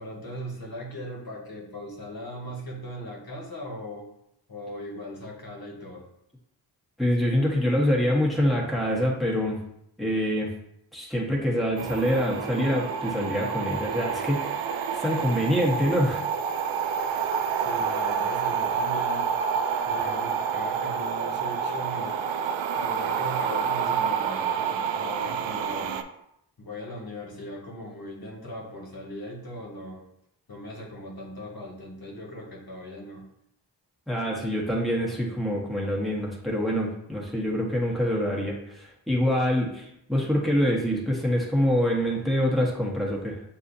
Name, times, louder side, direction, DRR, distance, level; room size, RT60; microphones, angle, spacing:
voice 1, 0.0-4.1 4.5-6.1 17.6-19.3 19.8-22.3 22.7-26.0 26.6-30.0 30.5-33.3, equal, 50° left, -2 dB, 1.4 m, -39 dB
voice 2, 7.0-9.6 10.0-10.5 10.9-14.6 14.9-16.2 34.1-43.4, equal, ahead, -3 dB, 1.3 m, -25 dB
sound 1, 11.8-26.0, right 7 dB, 75° right, 0.5 m, -28 dB
6.7 x 2.7 x 2.6 m, 0.77 s
cardioid pair, 40°, 46 cm